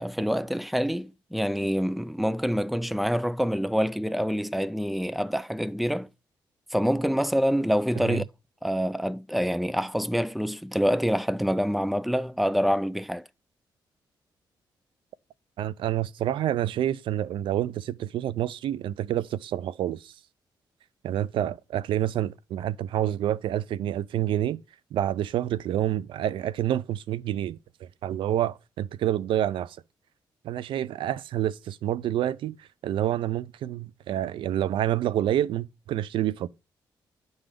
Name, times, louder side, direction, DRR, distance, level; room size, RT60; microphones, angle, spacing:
voice 1, 0.0-6.1 6.7-8.2 8.6-13.2, equal, ahead, 0.3 m, -26 dB
voice 2, 15.6-20.1 21.0-24.6 24.9-29.8 30.4-36.5, right 12 dB, 90° right, 0.4 m, -28 dB
9.0 x 3.9 x 5.0 m
cardioid pair, 95°, 8 cm